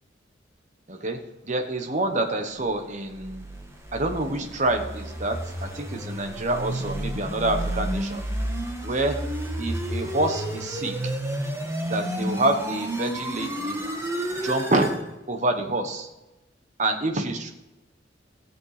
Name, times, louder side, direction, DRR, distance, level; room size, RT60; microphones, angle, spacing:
voice 1, 0.9-3.5 3.9-8.3 8.8-9.2 9.6-11.0 11.8-13.8 14.4-14.9 15.3-16.1 16.8-17.5, right 2 dB, 40° right, 5 dB, 1.2 m, -27 dB
sound 1, 2.8-15.0, right 1 dB, 15° right, 1.5 m, -31 dB
15.5 x 7.6 x 5.0 m, 1.0 s
head